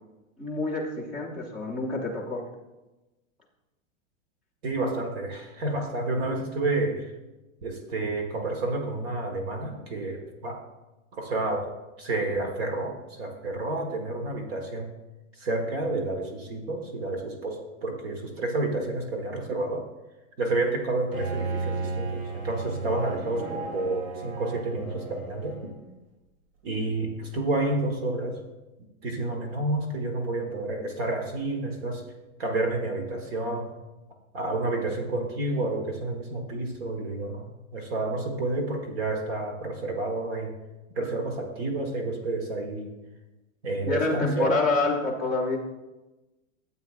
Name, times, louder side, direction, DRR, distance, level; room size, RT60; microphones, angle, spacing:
voice 1, 0.4-2.4 43.8-45.6, left 3 dB, ahead, -3 dB, 0.6 m, -27 dB
voice 2, 4.6-7.1 7.6-10.6 11.1-14.9 15.4-19.9 20.4-25.7 26.6-28.4 29.0-32.0 32.4-33.7 34.3-40.5 40.9-42.9 43.6-44.6, right 2 dB, 45° right, 3 dB, 1.5 m, -30 dB
Bowed string instrument, 21.1-25.9, right 4 dB, 85° right, 3.0 m, -34 dB
13.5 x 7.9 x 2.4 m, 1.1 s
supercardioid pair, 175°, 41 cm